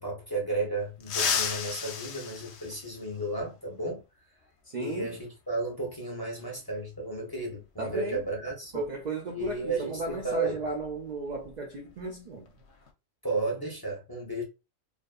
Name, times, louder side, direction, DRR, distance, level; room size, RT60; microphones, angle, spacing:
voice 1, 0.0-4.0 4.8-8.9 9.3-10.6 13.2-14.4, right 2 dB, 30° left, 0.5 m, -33 dB
sound 1, 1.0-3.4 5.1-5.2 6.4-6.5 8.1-8.3 8.6-8.9 9.3-11.5 11.8-12.0 12.5-12.9, left 6 dB, 65° left, 0.8 m, -34 dB
voice 2, 4.7-5.2 7.8-8.2 8.7-12.5, right 3 dB, 75° right, 0.4 m, -35 dB
2.5 x 2.5 x 2.3 m
omnidirectional pair, 1.4 m